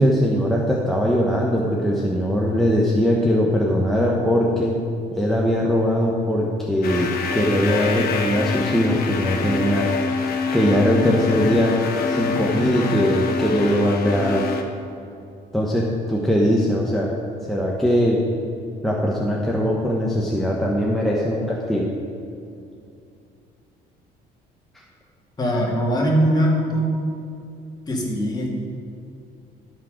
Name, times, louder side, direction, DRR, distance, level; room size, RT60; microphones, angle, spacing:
voice 1, 0.0-4.7 5.1-9.9 10.5-11.7 12.1-14.4 15.5-17.1 17.4-18.2 18.8-21.9, equal, ahead, -3 dB, 1.0 m, -20 dB
sound 1, 6.8-14.6, left 5 dB, 65° left, 1.1 m, -26 dB
voice 2, 25.4-27.0 27.9-28.5, equal, 25° left, -3 dB, 2.5 m, -21 dB
12.5 x 6.1 x 5.0 m, 2.6 s
cardioid pair, 110°, 17 cm